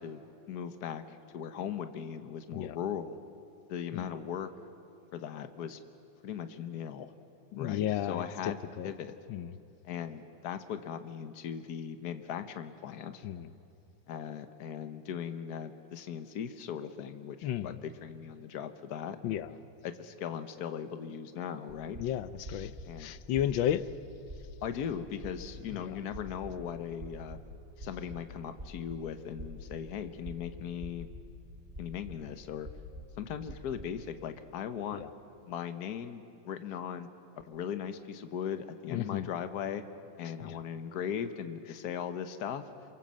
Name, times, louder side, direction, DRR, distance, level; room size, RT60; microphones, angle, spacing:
voice 1, 0.0-3.2 3.7-4.5 5.1-5.8 6.2-7.1 7.6-8.6 8.8-9.1 9.8-13.3 14.1-19.4 19.8-22.0 22.8-23.1 24.6-27.4 27.8-31.1 31.8-32.7 33.2-35.0 35.5-37.1 37.5-39.8 40.2-42.6, left 8 dB, 60° left, 9 dB, 1.5 m, -38 dB
voice 2, 7.5-8.9 9.3-9.5 13.2-13.5 17.4-17.8 19.2-19.5 22.0-23.9 25.7-26.0 34.9-35.1 38.9-39.3 40.4-40.6, left 11 dB, 85° left, 14 dB, 1.5 m, -33 dB
sound 1, 21.7-34.2, left 1 dB, 30° right, 3.5 m, -47 dB
27.5 x 23.5 x 7.6 m, 2.6 s
omnidirectional pair, 2.0 m